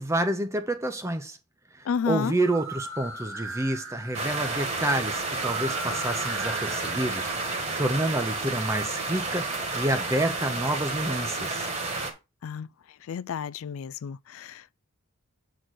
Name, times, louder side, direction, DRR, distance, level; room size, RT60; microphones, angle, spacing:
voice 1, 0.0-1.4 1.7-11.7, right 1 dB, 15° right, 0.6 m, -29 dB
voice 2, 1.9-2.3 12.4-12.7 13.1-14.7, left 7 dB, 70° left, 0.3 m, -31 dB
sound 1, 2.3-8.1, right 3 dB, 60° right, 1.6 m, -39 dB
sound 2, 4.1-12.1, right 3 dB, 30° right, 1.5 m, -31 dB
7.8 x 4.1 x 4.6 m
head